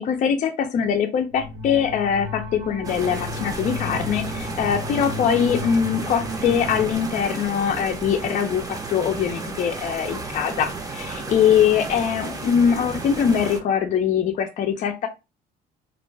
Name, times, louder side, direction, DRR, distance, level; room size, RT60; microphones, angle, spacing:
voice 1, 0.0-15.1, left 8 dB, 50° left, 4 dB, 0.5 m, -22 dB
sound 1, 1.3-7.0, left 1 dB, 60° right, 1.0 m, -33 dB
sound 2, 2.8-13.6, right 3 dB, 20° right, 0.6 m, -33 dB
2.5 x 2.1 x 3.2 m, 0.26 s
cardioid pair, 110°, 17 cm